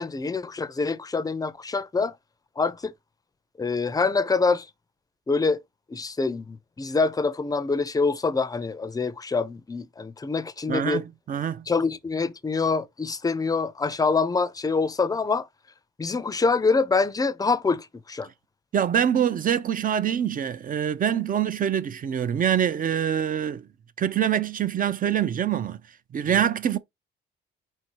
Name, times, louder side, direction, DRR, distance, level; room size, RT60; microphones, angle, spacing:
voice 1, 0.0-2.2 2.6-2.9 3.6-4.7 5.3-5.6 5.9-11.0 11.7-15.5 16.0-18.3 26.3-26.4, left 4 dB, 20° left, 0.5 m, -25 dB
voice 2, 10.7-11.7 18.7-23.7 24.0-25.8 26.1-26.8, right 9 dB, 45° right, 0.6 m, -25 dB
4.4 x 2.7 x 4.5 m
cardioid pair, 90°, 20 cm